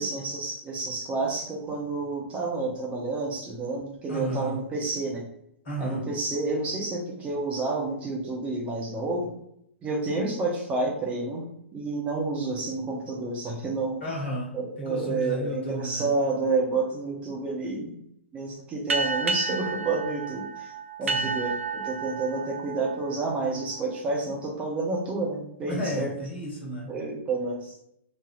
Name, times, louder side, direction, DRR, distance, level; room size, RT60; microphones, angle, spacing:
voice 1, 0.0-5.3 5.8-9.3 9.8-11.5 11.7-14.0 14.5-18.0 18.3-20.7 21.0-26.1 26.9-27.7, right 3 dB, 20° right, -2 dB, 0.7 m, -29 dB
voice 2, 4.1-4.6 5.6-6.0 14.0-16.1 21.0-21.3 25.7-26.9, equal, 55° left, -2 dB, 1.4 m, -33 dB
sound 1, 18.9-24.0, right 4 dB, 70° right, 0.4 m, -31 dB
4.3 x 2.6 x 2.3 m, 0.74 s
figure-of-eight pair, 110°, 7 cm